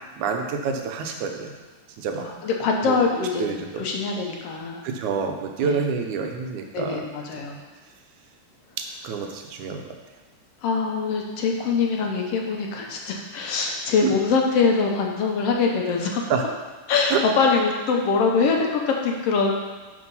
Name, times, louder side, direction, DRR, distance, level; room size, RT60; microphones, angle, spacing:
voice 1, 0.2-1.5 2.0-2.3 2.8-3.8 4.8-7.0 9.0-10.0 14.0-14.2 16.3-16.5 17.1-17.2, right 5 dB, 85° right, 4 dB, 2.2 m, -27 dB
voice 2, 2.2-4.8 5.6-5.8 6.7-7.6 10.6-16.2 16.9-19.7, left 4 dB, 65° left, 1 dB, 1.7 m, -23 dB
6.7 x 6.1 x 5.4 m, 1.2 s
omnidirectional pair, 3.4 m